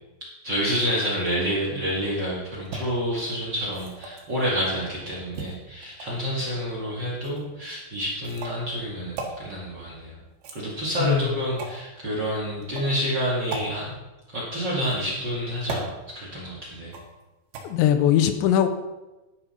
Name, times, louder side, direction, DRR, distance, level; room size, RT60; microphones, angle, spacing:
voice 1, 0.4-10.2 10.5-14.0 14.3-16.9, equal, 35° right, -5 dB, 2.0 m, -28 dB
sound 1, 2.6-2.8 3.7-4.3 5.3-6.2 7.2-7.4 8.2-8.6 9.2-9.3 10.3-10.9 11.6-11.8 12.6-12.9 13.5-13.7 14.7-15.2 15.7-15.9 16.9-17.2 17.5-17.6, right 3 dB, 65° right, 3.3 m, -36 dB
voice 2, 17.6-18.7, left 10 dB, 85° left, 8 dB, 3.1 m, -20 dB
11.0 x 7.0 x 5.7 m, 1.1 s
omnidirectional pair, 5.1 m